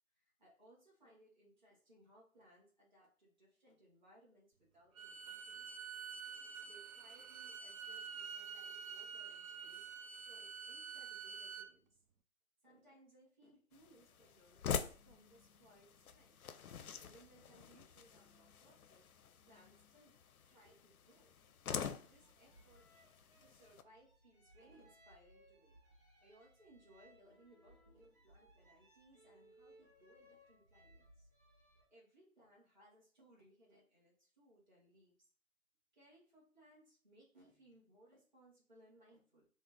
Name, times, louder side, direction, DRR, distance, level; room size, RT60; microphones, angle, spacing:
voice 1, 0.1-5.7 6.6-12.0 12.6-16.4 17.0-19.1 19.5-21.5 22.0-22.9 23.4-25.7 26.2-31.3 31.9-35.3 35.9-39.5, right 1 dB, 35° right, -5 dB, 1.2 m, -66 dB
Bowed string instrument, 5.0-11.7, right 6 dB, 75° right, 0.6 m, -48 dB
sound 1, 13.7-23.8, left 7 dB, 90° left, 0.5 m, -46 dB
sound 2, 22.1-31.8, equal, 10° right, 1.3 m, -66 dB
3.4 x 2.1 x 3.8 m, 0.42 s
hypercardioid pair, 175°, 42 cm